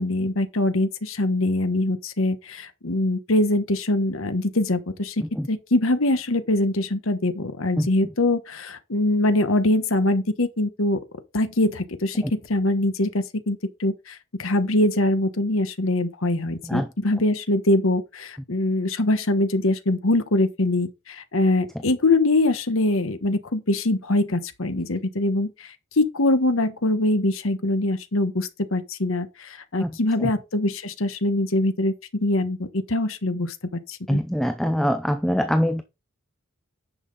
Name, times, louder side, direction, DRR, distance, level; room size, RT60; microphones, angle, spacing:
voice 1, 0.0-11.0 11.3-34.2, left 2 dB, 70° left, 1.2 m, -23 dB
voice 2, 34.1-35.8, equal, ahead, 0.5 m, -23 dB
10.0 x 5.8 x 4.0 m
head